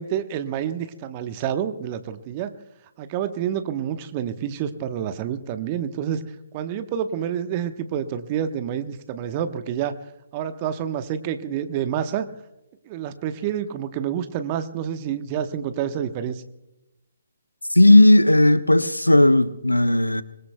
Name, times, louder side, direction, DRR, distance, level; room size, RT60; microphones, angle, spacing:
voice 1, 0.0-2.5 3.0-6.2 6.5-10.0 10.3-12.3 12.9-16.4, right 9 dB, 30° right, 1.1 m, -28 dB
voice 2, 17.7-20.2, left 1 dB, 85° left, 0.8 m, -15 dB
25.0 x 20.5 x 2.3 m
figure-of-eight pair, 135°, 0 cm